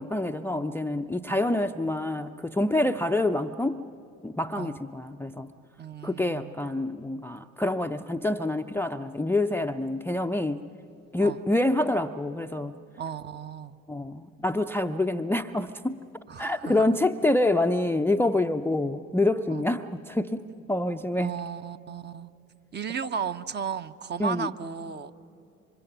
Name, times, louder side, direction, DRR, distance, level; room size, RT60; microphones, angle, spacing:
voice 1, 0.0-3.8 4.2-5.5 6.0-10.6 11.1-12.8 13.9-16.0 16.4-21.3 24.2-24.5, left 2 dB, 5° left, 10 dB, 0.5 m, -27 dB
voice 2, 5.8-6.8 11.2-11.4 13.0-13.8 16.3-17.0 19.5-19.7 21.1-22.3 22.7-25.1, right 7 dB, 30° right, 10 dB, 0.8 m, -35 dB
27.5 x 25.5 x 5.7 m, 2.7 s
figure-of-eight pair, 50°, 38 cm